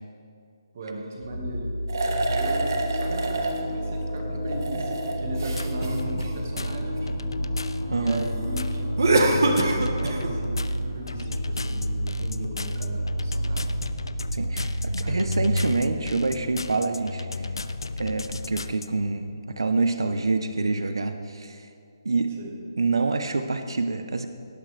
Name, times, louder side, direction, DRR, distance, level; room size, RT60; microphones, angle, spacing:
voice 1, 0.7-1.8 2.2-7.1 7.9-13.8 15.0-15.7 22.4-22.6, right 1 dB, 30° right, 0 dB, 1.6 m, -37 dB
sound 1, 1.2-15.7, equal, 5° left, 3.2 m, -30 dB
sound 2, 1.9-3.6 4.3-7.0 9.0-10.3, right 2 dB, 50° right, 1.3 m, -25 dB
sound 3, 5.3-18.9, left 3 dB, 80° left, 0.6 m, -35 dB
voice 2, 7.9-8.2 14.3-14.7 15.1-17.5 18.0-21.7 22.0-22.3 22.8-24.3, right 3 dB, 85° right, 8 dB, 0.8 m, -26 dB
18.0 x 10.0 x 3.3 m, 2.4 s
hypercardioid pair, 180°, 2 cm